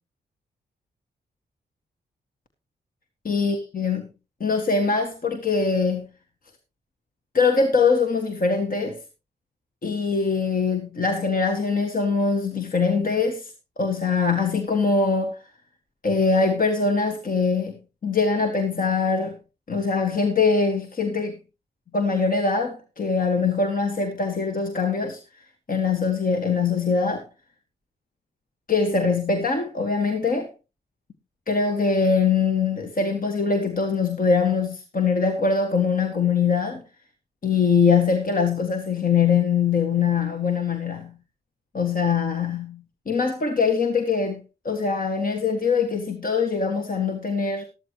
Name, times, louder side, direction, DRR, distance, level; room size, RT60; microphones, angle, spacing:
voice 1, 3.2-4.0 4.4-6.1 7.3-9.0 9.8-15.4 16.0-17.7 18.0-19.4 19.7-21.4 21.9-25.2 25.7-27.3 28.7-30.5 31.5-36.8 37.4-41.2 41.7-44.4 44.7-47.6, left 5 dB, 50° left, 1.8 m, -22 dB
13.0 x 13.0 x 3.1 m
cardioid pair, 50°, 19 cm